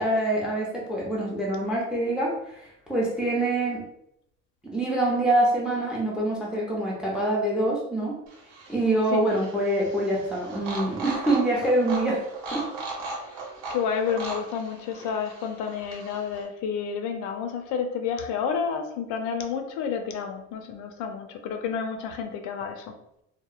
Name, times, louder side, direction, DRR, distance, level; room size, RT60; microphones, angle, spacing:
voice 1, 0.0-3.8 4.6-8.1 8.7-12.2 12.5-12.6, right 1 dB, 5° right, -3 dB, 0.3 m, -25 dB
sound 1, 8.3-16.4, right 3 dB, 85° right, 0.9 m, -38 dB
voice 2, 13.7-22.9, left 6 dB, 65° left, 6 dB, 0.4 m, -30 dB
2.8 x 2.0 x 2.3 m, 0.79 s
cardioid pair, 150°, 32 cm